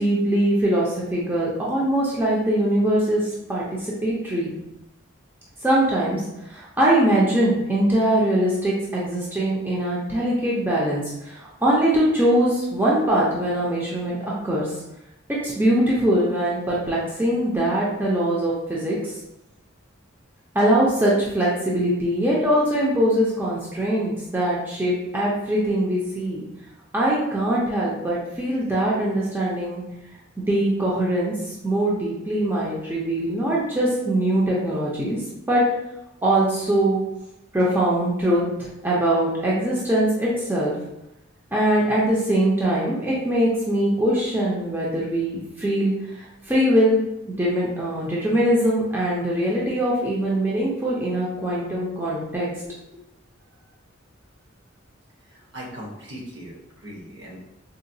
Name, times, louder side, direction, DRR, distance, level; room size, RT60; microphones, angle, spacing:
voice 1, 0.0-4.5 5.6-6.2 6.5-14.7 15.3-19.2 20.5-26.4 26.9-29.8 30.4-35.2 35.5-35.6 36.2-37.0 37.5-40.7 41.5-47.0 47.4-52.7, right 1 dB, 10° right, -6 dB, 0.4 m, -22 dB
voice 2, 55.3-57.4, equal, 55° right, -2 dB, 0.8 m, -39 dB
3.8 x 2.1 x 2.6 m, 0.90 s
head